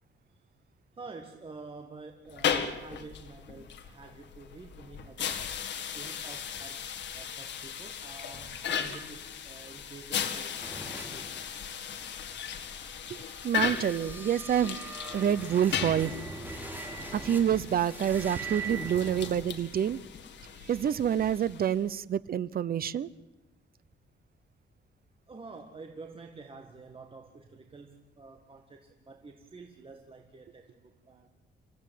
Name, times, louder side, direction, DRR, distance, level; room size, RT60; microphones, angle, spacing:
voice 1, 1.0-5.5 5.9-6.9 7.1-10.6 10.9-11.3 25.3-31.3, right 3 dB, 30° right, 4 dB, 1.9 m, -48 dB
sound 1, 2.3-21.9, left 8 dB, 70° left, 2.0 m, -37 dB
sound 2, 10.6-19.3, right 3 dB, 10° right, 4.1 m, -42 dB
voice 2, 13.4-14.8 15.1-16.1 17.1-20.0 20.6-23.1, right 9 dB, 50° right, 18 dB, 0.8 m, -27 dB
27.0 x 16.0 x 9.4 m, 1.1 s
cardioid pair, 130°, 19 cm